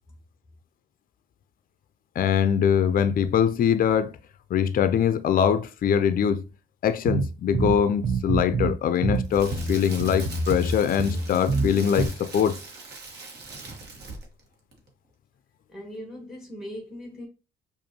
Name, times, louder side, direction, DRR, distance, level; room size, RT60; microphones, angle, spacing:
voice 1, 2.2-4.2 4.5-6.4 6.8-12.6, left 8 dB, 45° left, 0.4 m, -23 dB
sound 1, 7.1-8.8 9.0-12.1, right 4 dB, 25° right, 0.7 m, -27 dB
Crackle, 8.9-14.4 14.7-14.9, right 3 dB, 60° right, 1.3 m, -41 dB
voice 2, 15.7-17.3, equal, 5° right, 1.2 m, -39 dB
5.1 x 2.5 x 2.9 m
cardioid pair, 90°, 20 cm